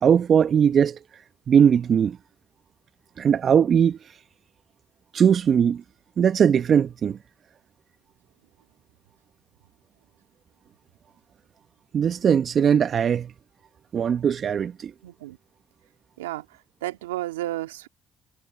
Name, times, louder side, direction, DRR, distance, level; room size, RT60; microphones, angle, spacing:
voice 1, 0.0-1.0 1.5-2.2 3.2-4.0 5.1-5.8 6.2-7.2 11.9-13.3 13.9-14.9, right 8 dB, 55° right, 1.4 m, -19 dB
voice 2, 15.0-15.4 16.2-16.4 16.8-17.9, right 15 dB, 85° right, 2.6 m, -32 dB
hypercardioid pair, 50°, 0 cm